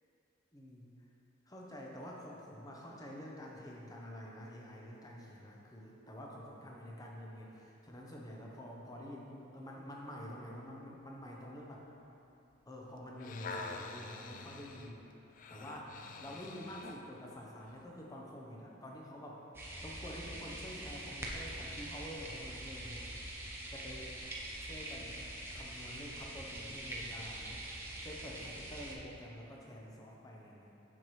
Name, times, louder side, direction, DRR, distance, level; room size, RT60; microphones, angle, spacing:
voice 1, 0.5-0.9 1.5-11.8 12.7-15.0 15.5-19.4 19.8-23.2 23.7-24.3 24.6-25.3 25.5-27.6 28.0-30.7, equal, 20° left, -2 dB, 0.8 m, -48 dB
sound 1, 13.0-17.1 17.7-17.8, left 3 dB, 45° left, 0.3 m, -46 dB
sound 2, 19.5-28.9, right 1 dB, 10° right, 0.7 m, -44 dB
7.7 x 5.9 x 3.1 m, 2.8 s
head